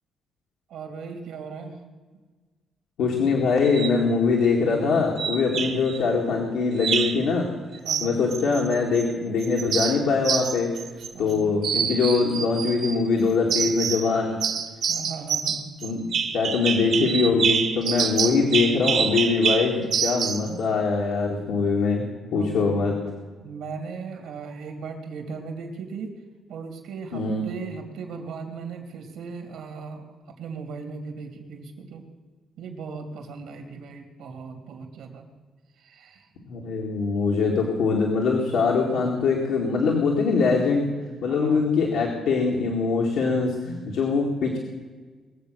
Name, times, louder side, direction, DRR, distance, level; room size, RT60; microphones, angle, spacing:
voice 1, 0.7-1.9 7.8-8.2 11.1-11.6 14.9-15.7 18.0-18.1 22.3-22.9 23.4-26.2 26.5-32.1 32.6-35.3 35.8-36.3 41.3-41.7, right 5 dB, 85° right, 4 dB, 3.0 m, -37 dB
voice 2, 3.0-7.5 8.0-10.7 11.2-14.4 15.8-16.1 16.3-23.0 27.1-27.4 36.5-40.9 41.2-44.6, left 4 dB, 85° left, -2 dB, 2.1 m, -23 dB
sound 1, 3.6-4.0 5.2-6.0 6.8-7.2 7.9-9.1 9.4-11.3 11.6-13.0 13.5-14.1 14.4-20.5, right 7 dB, 65° right, 1.5 m, -26 dB
21.5 x 7.6 x 6.6 m, 1.4 s
cardioid pair, 90°, 0 cm